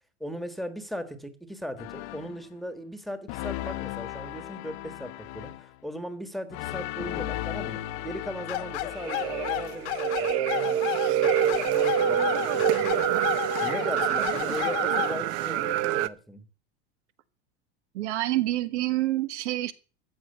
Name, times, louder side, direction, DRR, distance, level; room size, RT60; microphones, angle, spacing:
voice 1, 0.2-13.1 13.6-16.4, equal, ahead, 1.4 m, -38 dB
sound 1, 1.8-2.5 3.3-5.8 6.5-10.0, left 15 dB, 55° left, 1.0 m, -36 dB
sound 2, 8.5-15.2, left 18 dB, 80° left, 1.8 m, -32 dB
sound 3, 8.9-16.1, right 11 dB, 45° right, 0.7 m, -26 dB
voice 2, 17.9-19.7, right 16 dB, 80° right, 1.6 m, -27 dB
14.0 x 7.8 x 8.0 m
supercardioid pair, 155°, 34 cm